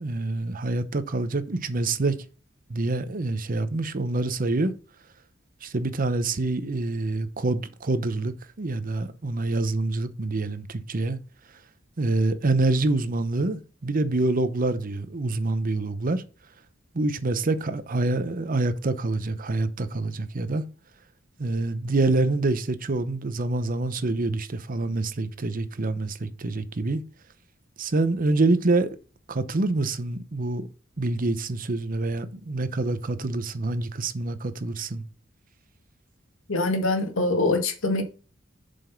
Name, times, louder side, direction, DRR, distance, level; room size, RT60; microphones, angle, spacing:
voice 1, 0.0-2.1 2.7-4.7 5.6-11.2 12.0-16.2 16.9-20.6 21.4-27.0 27.8-28.9 29.3-30.7 31.0-35.0, right 2 dB, 45° right, 0.7 m, -26 dB
voice 2, 36.5-38.0, left 2 dB, 85° left, 1.8 m, -24 dB
7.6 x 5.2 x 5.7 m
head